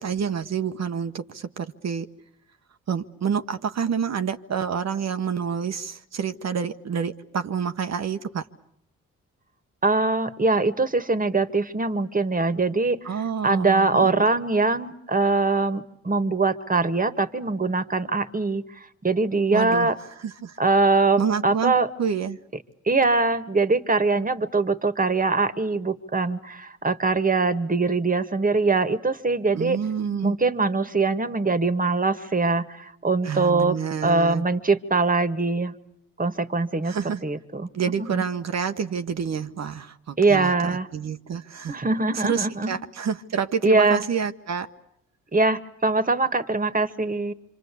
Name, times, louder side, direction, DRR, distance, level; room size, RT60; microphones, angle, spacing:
voice 1, 0.0-2.1 2.9-8.5 13.0-14.1 19.5-19.9 20.2-20.6 21.2-21.7 22.0-22.4 29.5-30.4 33.2-34.4 36.9-37.2 37.7-41.8 42.2-44.7, right 7 dB, 55° right, 7 dB, 1.1 m, -28 dB
voice 2, 9.8-13.1 13.4-20.0 20.6-21.9 22.9-29.8 30.2-33.8 34.0-35.8 36.2-37.7 38.0-38.2 40.2-40.9 41.7-42.8 43.6-44.0 45.3-47.3, right 3 dB, 25° right, 11 dB, 1.7 m, -22 dB
26.0 x 26.0 x 8.4 m, 0.74 s
supercardioid pair, 55°, 31 cm